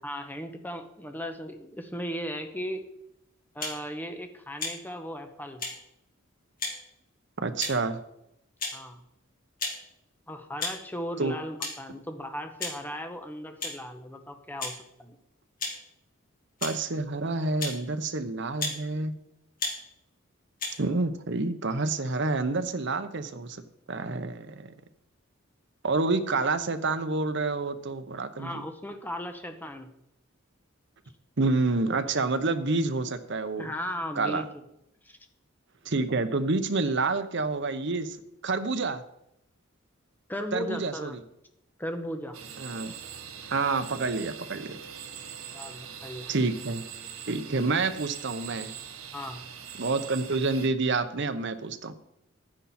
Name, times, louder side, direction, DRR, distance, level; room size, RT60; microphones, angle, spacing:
voice 1, 0.0-2.8 3.5-5.6 8.7-9.0 10.3-15.2 28.4-29.9 33.6-34.6 35.0-35.2 40.3-41.2 41.8-42.4 45.5-46.3 49.1-49.4, equal, 10° left, 6 dB, 1.0 m, -37 dB
sound 1, 3.6-3.8 4.6-4.8 5.6-5.7 6.6-6.8 7.6-7.9 8.6-8.8 9.6-9.8 10.6-10.8 11.6-11.7 12.6-12.8 13.6-13.8 14.6-14.7 15.6-15.7 16.6-16.7 17.6-17.8 18.6-18.8 19.6-19.8 20.6-20.7, left 3 dB, 40° left, 3.0 m, -32 dB
voice 2, 7.4-8.0 11.2-11.3 16.6-19.1 20.8-24.7 25.8-28.6 31.4-33.7 34.2-34.4 35.8-38.2 38.4-39.0 40.5-41.2 42.6-42.9 43.5-44.8 46.3-46.8 47.3-48.7 49.8-51.9, right 3 dB, 60° right, 10 dB, 0.9 m, -28 dB
sound 2, 42.3-50.7, right 8 dB, 85° right, 1.2 m, -42 dB
10.5 x 10.0 x 4.3 m, 0.81 s
head